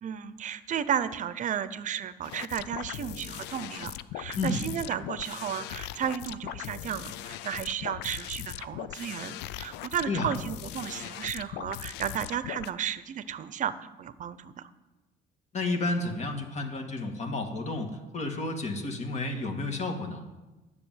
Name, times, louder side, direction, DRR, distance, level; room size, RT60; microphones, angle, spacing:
voice 1, 0.0-14.7, right 9 dB, 50° right, 15 dB, 0.7 m, -33 dB
sound 1, 2.2-12.7, left 14 dB, 90° left, 0.4 m, -39 dB
voice 2, 15.5-20.2, left 2 dB, 40° left, 4 dB, 1.8 m, -31 dB
10.0 x 6.9 x 9.0 m, 1.1 s
cardioid pair, 110°, 17 cm